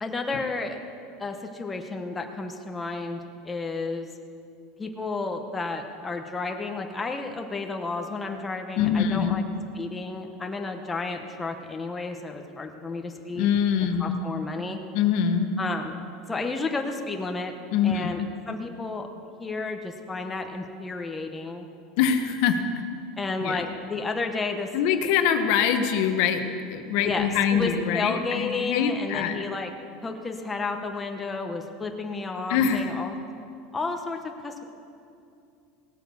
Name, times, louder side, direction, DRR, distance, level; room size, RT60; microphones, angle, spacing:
voice 1, 0.0-0.8 1.2-4.1 4.8-9.4 9.8-13.5 14.0-14.8 15.6-16.0 16.3-17.5 17.8-19.1 19.4-21.7 23.2-24.7 27.0-29.7 30.0-33.2 33.7-34.6, left 3 dB, 10° left, 3 dB, 1.0 m, -32 dB
voice 2, 8.8-9.5 13.3-14.2 14.9-15.6 17.7-18.3 22.0-22.8 23.4-23.6 24.7-29.4 32.5-32.9, left 7 dB, 60° left, 7 dB, 1.1 m, -24 dB
17.0 x 9.0 x 7.0 m, 2.5 s
supercardioid pair, 150°, 0 cm